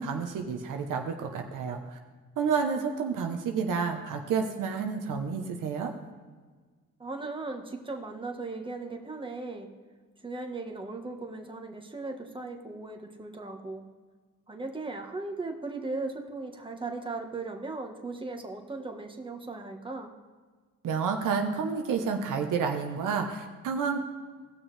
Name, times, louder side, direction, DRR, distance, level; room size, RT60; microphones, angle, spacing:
voice 1, 0.0-2.0 2.4-5.9 20.8-24.0, right 6 dB, 75° right, 4 dB, 1.0 m, -30 dB
voice 2, 7.0-9.7 10.2-13.9 14.5-20.1, right 3 dB, 15° right, 3 dB, 1.5 m, -37 dB
17.0 x 6.3 x 3.3 m, 1.4 s
cardioid pair, 70°, 31 cm